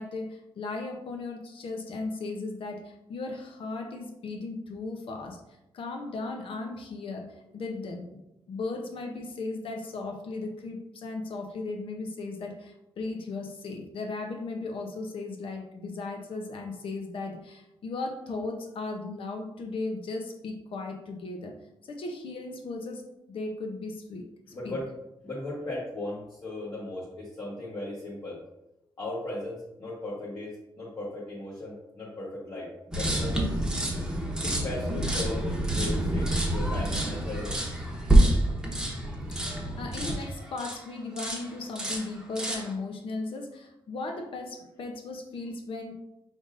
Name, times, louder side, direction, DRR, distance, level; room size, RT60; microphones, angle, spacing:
voice 1, 0.0-5.4 5.7-8.2 8.5-21.5 21.8-24.2 24.6-24.8 39.3-45.9, left 3 dB, 75° left, 4 dB, 0.7 m, -36 dB
voice 2, 24.5-24.9 25.2-28.4 29.0-33.4 34.4-37.6, left 2 dB, 45° left, -6 dB, 1.2 m, -37 dB
sound 1, 32.9-40.8 41.2-41.5 41.7-42.7, right 1 dB, 10° right, 0.9 m, -27 dB
5.2 x 3.5 x 2.6 m, 0.91 s
wide cardioid pair, 135°, 9 cm